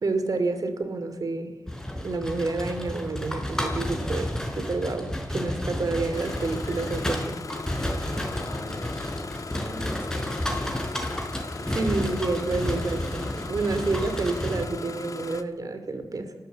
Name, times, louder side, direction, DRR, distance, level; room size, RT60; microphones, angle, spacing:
voice 1, 0.0-1.6 2.0-7.4 11.6-16.3, right 3 dB, 70° right, 9 dB, 2.6 m, -29 dB
sound 1, 1.7-14.7, left 1 dB, 10° left, 4.4 m, -31 dB
Engine starting, 6.1-15.4, left 4 dB, 65° left, 1.3 m, -38 dB
voice 2, 8.3-10.5, left 1 dB, 35° left, 5 dB, 4.0 m, -41 dB
30.0 x 13.0 x 8.0 m, 1.2 s
wide cardioid pair, 75°, 6 cm